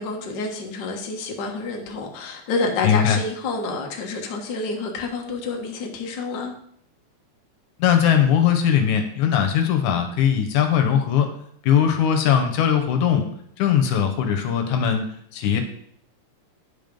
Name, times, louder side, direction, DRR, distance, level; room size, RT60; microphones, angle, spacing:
voice 1, 0.0-6.5, left 3 dB, 50° left, 1 dB, 1.5 m, -28 dB
voice 2, 2.8-3.2 7.8-11.3 11.6-13.3 13.6-15.1 15.3-15.6, left 8 dB, 80° left, 6 dB, 2.4 m, -20 dB
9.9 x 5.4 x 5.3 m, 0.66 s
omnidirectional pair, 3.5 m